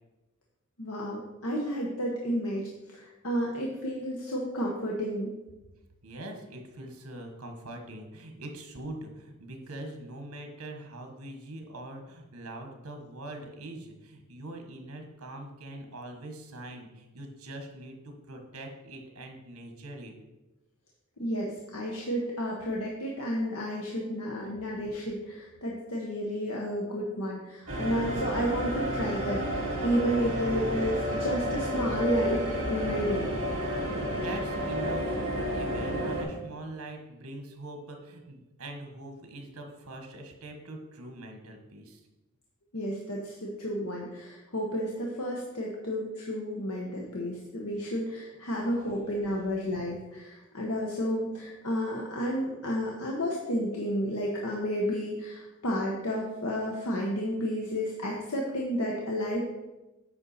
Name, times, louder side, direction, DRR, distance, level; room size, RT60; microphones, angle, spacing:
voice 1, 0.8-5.3 21.2-33.3 42.7-59.4, equal, 80° left, -2 dB, 1.1 m, -31 dB
voice 2, 6.0-20.1 33.8-42.0 48.6-48.9, right 1 dB, 85° right, 4 dB, 1.4 m, -43 dB
sound 1, 27.7-36.2, equal, 65° right, 3.1 m, -31 dB
8.9 x 5.5 x 4.2 m, 1.0 s
head